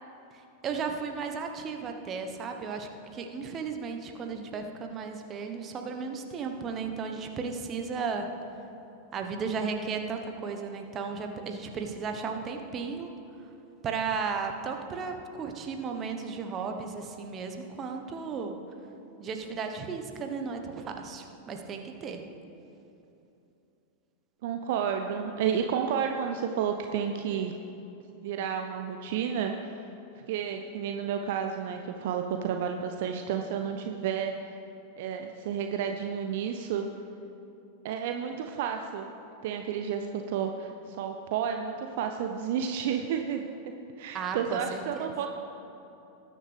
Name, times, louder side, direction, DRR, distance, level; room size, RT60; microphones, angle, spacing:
voice 1, 0.3-8.3 9.1-13.1 13.8-18.6 19.2-22.2 44.1-45.1, right 5 dB, 30° right, 4 dB, 1.1 m, -35 dB
voice 2, 24.4-27.5 28.2-29.8 30.3-34.3 35.0-36.9 37.8-39.1 39.4-43.4 44.0-45.3, right 7 dB, 50° right, 5 dB, 0.6 m, -31 dB
20.0 x 9.7 x 3.4 m, 2.9 s
figure-of-eight pair, 90°, 0 cm